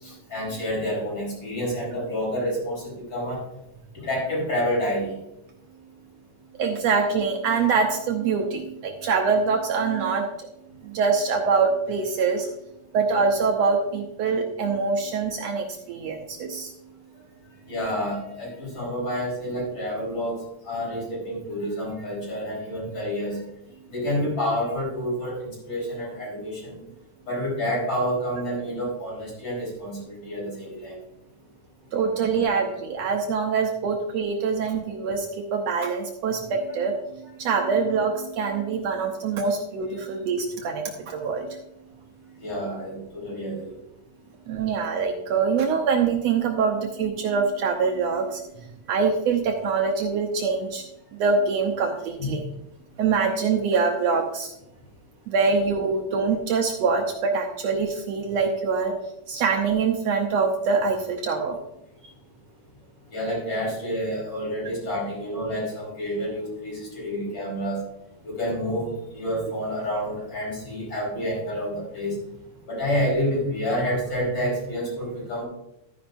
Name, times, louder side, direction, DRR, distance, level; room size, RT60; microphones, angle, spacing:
voice 1, 0.0-3.4 3.9-5.1 17.7-20.4 20.6-23.4 23.9-26.8 27.3-31.0 39.9-40.0 42.4-43.7 63.1-67.8 68.2-72.2 72.7-75.4, equal, 40° left, -5 dB, 5.1 m, -28 dB
voice 2, 6.6-10.5 10.8-12.5 12.9-16.7 31.9-41.6 44.5-50.8 51.1-52.4 53.0-54.5 55.3-58.9 59.3-61.6, right 5 dB, 70° right, 2 dB, 1.8 m, -24 dB
12.5 x 9.9 x 2.6 m, 0.84 s
omnidirectional pair, 3.3 m